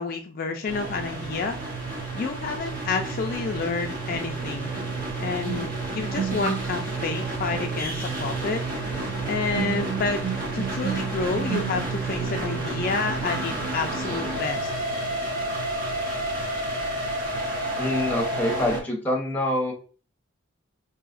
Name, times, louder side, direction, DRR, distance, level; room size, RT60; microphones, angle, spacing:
voice 1, 0.0-1.6 2.1-4.7 5.2-8.6 9.3-10.2 10.5-14.7, left 4 dB, 45° left, 4 dB, 0.3 m, -29 dB
sound 1, 0.7-18.8, right 2 dB, 45° right, 1.1 m, -30 dB
sound 2, 2.7-2.8 4.1-15.2 15.4-15.7, right 7 dB, 90° right, 0.6 m, -36 dB
voice 2, 17.8-19.7, left 1 dB, 10° left, 0 dB, 0.9 m, -26 dB
4.8 x 2.7 x 2.5 m, 0.37 s
head